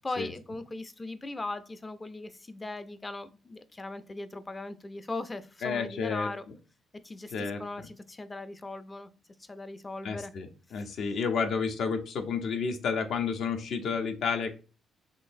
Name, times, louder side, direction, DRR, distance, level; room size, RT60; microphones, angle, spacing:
voice 1, 0.0-6.5 7.0-9.1 9.5-10.3 10.8-10.9, left 2 dB, 20° left, 0.4 m, -39 dB
voice 2, 5.6-6.3 7.3-7.9 10.0-14.5, left 5 dB, 70° left, 0.6 m, -31 dB
3.8 x 3.0 x 2.5 m
cardioid pair, 90°, 0 cm